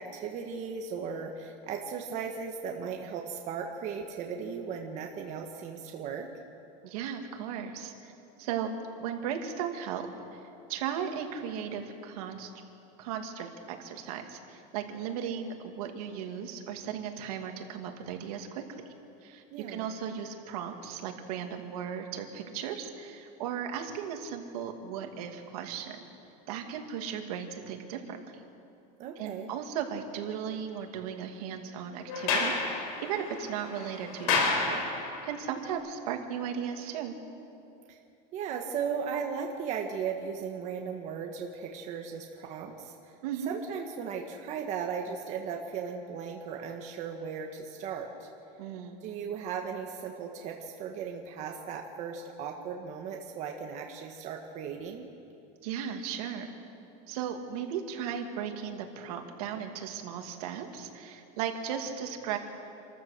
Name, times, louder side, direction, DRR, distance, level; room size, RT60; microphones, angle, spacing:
voice 1, 0.0-6.3 19.5-19.8 29.0-29.5 37.9-38.0 38.3-43.1 43.5-48.3 49.0-55.1, right 6 dB, 40° right, 2 dB, 1.5 m, -37 dB
voice 2, 6.8-8.1 8.4-8.7 9.0-10.4 10.7-12.5 13.0-18.8 19.2-26.0 26.5-28.2 29.2-34.8 35.2-37.1 43.2-43.5 48.6-49.0 55.6-56.5 57.1-62.4, right 8 dB, 80° right, 4 dB, 2.4 m, -36 dB
Sliding door, 32.1-35.4, left 4 dB, 70° left, 5.1 m, -30 dB
28.0 x 14.0 x 6.7 m, 2.7 s
supercardioid pair, 160°, 19 cm